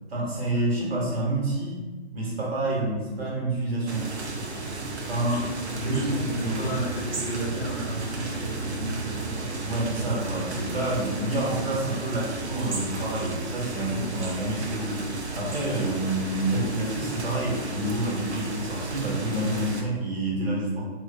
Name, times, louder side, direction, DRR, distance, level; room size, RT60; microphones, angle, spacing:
voice 1, 0.1-1.8 2.1-4.1 5.0-5.5 5.8-6.8 9.6-15.0 15.3-20.8, right 1 dB, 65° right, -4 dB, 1.4 m, -28 dB
sound 1, 3.9-19.8, right 3 dB, 90° right, 0.7 m, -34 dB
voice 2, 5.8-9.5, equal, 15° left, -12 dB, 0.4 m, -33 dB
3.1 x 3.0 x 2.6 m, 1.3 s
figure-of-eight pair, 135°, 33 cm